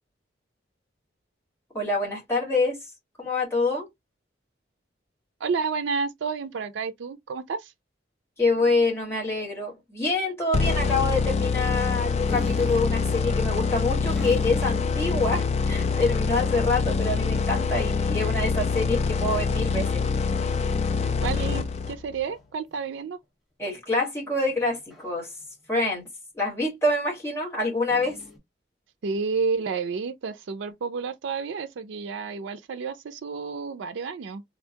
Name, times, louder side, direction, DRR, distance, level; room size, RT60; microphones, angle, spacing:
voice 1, 1.7-2.8 3.2-3.8 8.4-20.0 23.6-25.3 25.7-26.0 26.3-28.2, left 2 dB, 15° left, 1.5 m, -26 dB
voice 2, 5.4-7.7 21.2-23.2 29.0-34.4, right 5 dB, 80° right, 0.4 m, -30 dB
sound 1, 10.5-22.2, left 5 dB, 35° left, 0.3 m, -25 dB
sound 2, 12.3-18.2 18.6-18.7 18.9-19.4 20.3-20.9 22.2-22.7 24.3-25.7 27.9-28.4, left 2 dB, ahead, 1.3 m, -42 dB
3.7 x 2.2 x 2.7 m
head